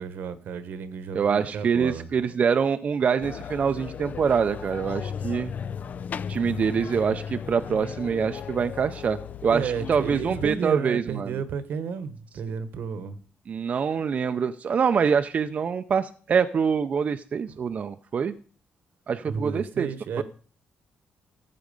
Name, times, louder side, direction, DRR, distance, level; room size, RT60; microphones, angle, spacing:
voice 1, 0.0-2.1 9.5-13.2 19.3-20.2, right 6 dB, 75° right, 13 dB, 1.2 m, -32 dB
voice 2, 1.1-5.5 6.3-11.4 13.5-18.3 19.1-19.9 20.2-20.3, right 6 dB, 45° right, 9 dB, 0.6 m, -25 dB
sound 1, 3.2-10.6, left 7 dB, 50° left, 0.5 m, -35 dB
15.0 x 7.7 x 5.3 m, 0.42 s
cardioid pair, 120°, 3 cm